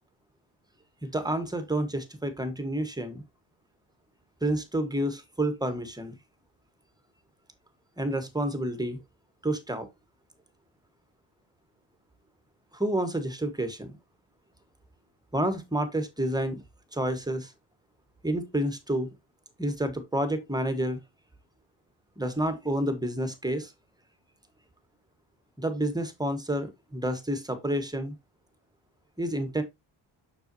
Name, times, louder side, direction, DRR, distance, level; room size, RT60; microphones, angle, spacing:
voice 1, 1.0-3.2 4.4-6.2 8.0-9.0 9.4-9.9 12.7-13.9 15.3-16.6 16.9-17.5 18.2-19.1 19.6-21.0 22.2-23.7 25.6-28.1 29.2-29.6, right 1 dB, 10° right, 1.6 m, -29 dB
6.9 x 6.6 x 2.9 m
cardioid pair, 110°, 49 cm